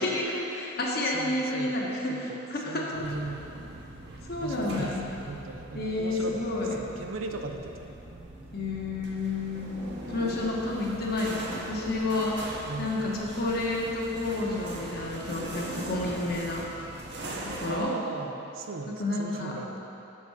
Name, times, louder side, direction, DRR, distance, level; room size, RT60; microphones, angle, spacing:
voice 1, 0.0-3.1 4.3-5.1 5.7-6.8 8.5-12.4 12.8-16.7 17.4-18.0 18.8-19.6, left 2 dB, 50° left, -3 dB, 1.2 m, -30 dB
voice 2, 1.0-1.8 2.1-2.4 2.7-3.5 4.4-6.4 6.8-7.9 12.6-13.1 17.7-19.8, right 3 dB, 85° right, 4 dB, 0.6 m, -38 dB
sound 1, 2.9-17.8, right 1 dB, 60° right, 0.9 m, -41 dB
7.1 x 6.7 x 4.8 m, 2.9 s
head